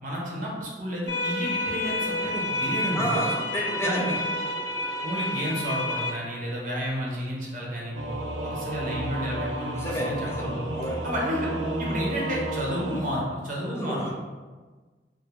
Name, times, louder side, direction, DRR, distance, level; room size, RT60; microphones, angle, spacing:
voice 1, 0.0-3.1 3.8-4.2 5.0-10.6 11.0-11.5 11.8-14.1, equal, 50° right, -3 dB, 0.6 m, -31 dB
sound 1, 1.1-6.1, left 1 dB, 80° left, 0.5 m, -29 dB
voice 2, 2.9-4.1 9.7-10.5 10.7-11.0 13.7-14.1, equal, 15° left, -3 dB, 0.4 m, -30 dB
Singing / Musical instrument, 7.9-13.0, right 1 dB, 85° right, 0.4 m, -32 dB
2.2 x 2.1 x 3.0 m, 1.4 s
head